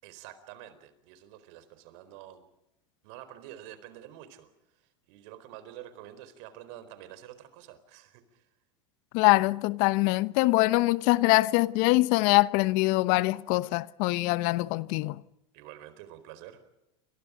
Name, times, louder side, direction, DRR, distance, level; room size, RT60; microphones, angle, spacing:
voice 1, 0.0-2.4 3.0-4.5 4.8-8.5 15.5-16.6, right 12 dB, 65° right, 4.3 m, -48 dB
voice 2, 9.1-15.2, left 21 dB, 60° left, 1.0 m, -23 dB
29.0 x 26.0 x 5.1 m
hypercardioid pair, 95°, 16 cm